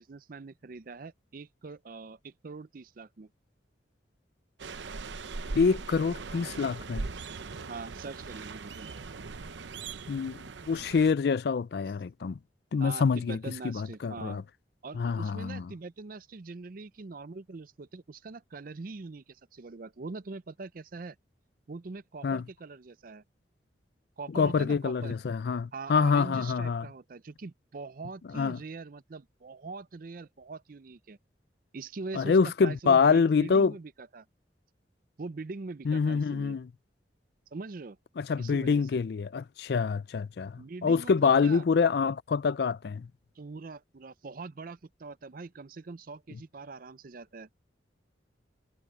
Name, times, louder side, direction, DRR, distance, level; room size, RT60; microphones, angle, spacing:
voice 1, 0.0-3.3 7.7-8.9 12.8-14.4 14.8-21.2 21.7-23.2 24.2-25.1 25.7-31.2 31.7-34.3 35.2-36.6 37.5-38.0 38.4-39.0 40.6-41.6 43.4-47.5, right 3 dB, 50° right, 0.5 m, -43 dB
sound 1, 4.6-11.1, right 4 dB, 80° right, 0.8 m, -40 dB
voice 2, 5.5-7.1 10.1-12.4 12.7-14.4 14.9-15.7 22.2-22.4 24.3-26.9 28.3-28.6 32.1-33.7 35.9-36.7 38.2-43.1, left 5 dB, 60° left, 0.4 m, -26 dB
head